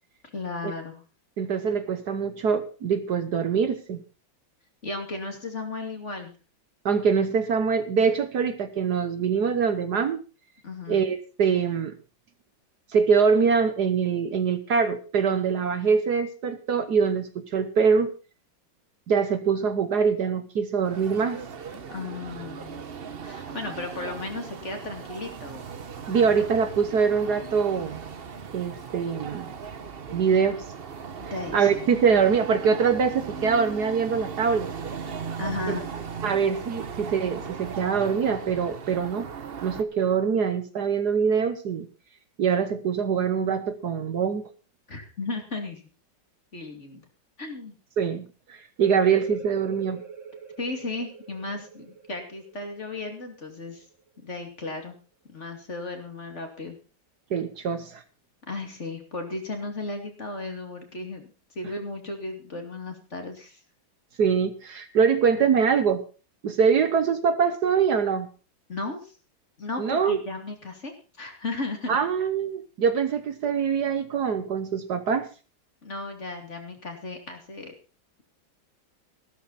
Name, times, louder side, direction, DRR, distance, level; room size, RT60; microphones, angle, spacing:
voice 1, 0.3-1.0 4.8-6.3 10.6-11.0 21.7-22.9 23.2-25.7 26.1-26.3 31.2-31.8 35.4-35.9 44.9-45.8 46.5-47.0 47.4-47.7 50.6-53.8 54.2-55.0 55.3-56.8 58.5-61.2 61.5-63.6 68.7-69.1 69.6-72.0 75.8-77.7, left 3 dB, 35° left, 4 dB, 2.9 m, -35 dB
voice 2, 1.4-4.0 6.8-10.2 10.9-11.9 12.9-18.1 19.1-21.4 26.1-28.0 28.5-29.5 30.1-30.6 31.5-34.7 35.7-35.8 36.2-39.3 39.6-41.9 42.4-44.5 48.0-48.2 48.5-50.0 57.3-58.0 64.2-66.0 66.4-68.3 69.8-70.2 71.9-75.3, right 6 dB, 60° right, 10 dB, 1.5 m, -24 dB
sound 1, 20.8-39.8, right 6 dB, 40° right, 0.8 m, -38 dB
sound 2, 48.8-54.2, right 6 dB, 90° right, 3.2 m, -42 dB
15.0 x 12.5 x 4.1 m, 0.35 s
omnidirectional pair, 2.1 m